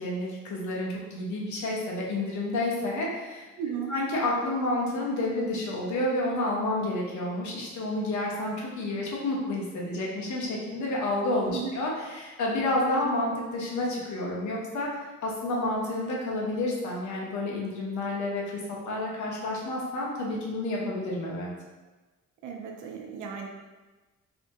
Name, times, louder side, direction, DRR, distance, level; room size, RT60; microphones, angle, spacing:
voice 1, 0.0-3.5 3.9-21.5, left 1 dB, 70° left, -3 dB, 0.9 m, -30 dB
voice 2, 3.6-3.9 11.5-11.8 22.4-23.5, right 7 dB, 85° right, 2 dB, 0.5 m, -35 dB
2.8 x 2.6 x 3.5 m, 1.2 s
cardioid pair, 90°, 30 cm